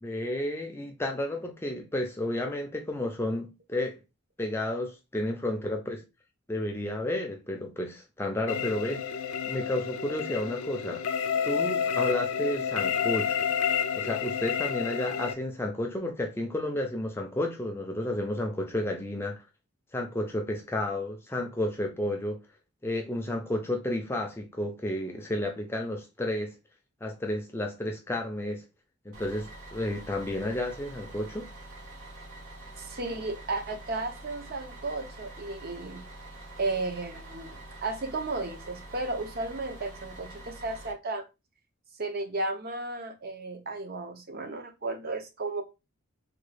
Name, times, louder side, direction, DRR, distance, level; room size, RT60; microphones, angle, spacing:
voice 1, 0.0-4.0 4.4-6.0 6.5-9.0 9.5-11.0 11.4-13.4 14.0-19.4 19.9-22.4 22.8-26.5 27.0-28.6 29.1-31.5, left 1 dB, 10° left, 0.4 m, -31 dB
sound 1, 8.5-15.3, left 7 dB, 75° left, 0.4 m, -30 dB
Bus, 29.1-40.9, right 2 dB, 85° right, 1.2 m, -46 dB
voice 2, 32.8-36.1 36.6-41.2 42.0-45.6, right 2 dB, 45° right, 0.6 m, -34 dB
3.5 x 2.3 x 3.3 m
head